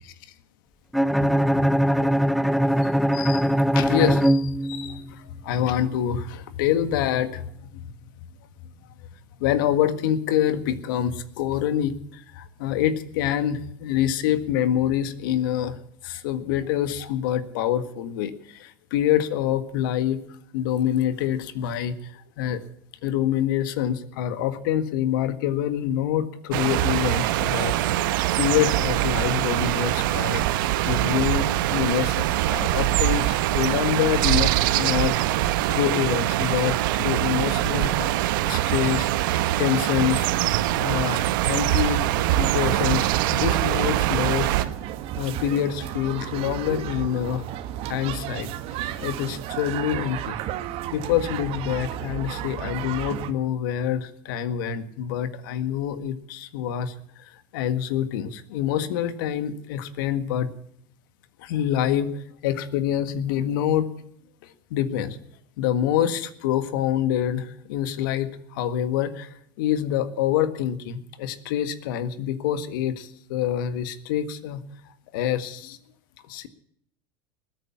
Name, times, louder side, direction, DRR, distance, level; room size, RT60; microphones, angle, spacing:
Bowed string instrument, 0.9-5.1, equal, ahead, 0.5 m, -21 dB
voice 1, 1.2-1.7 2.0-2.2 2.8-7.8 9.4-15.8 16.0-20.2 20.5-22.6 23.0-27.7 28.4-30.4 30.8-35.1 35.7-40.3 40.8-44.5 45.1-47.5 47.8-48.5 49.0-50.4 50.9-60.5 61.4-63.9 64.7-65.2 65.6-74.6 75.1-75.8 76.3-76.5, left 10 dB, 70° left, 12 dB, 1.7 m, -26 dB
sound 1, 26.5-44.7, right 15 dB, 70° right, 1.1 m, -23 dB
sound 2, 42.2-53.3, right 12 dB, 55° right, 1.7 m, -33 dB
20.5 x 9.3 x 7.2 m, 0.69 s
hypercardioid pair, 90°, 11 cm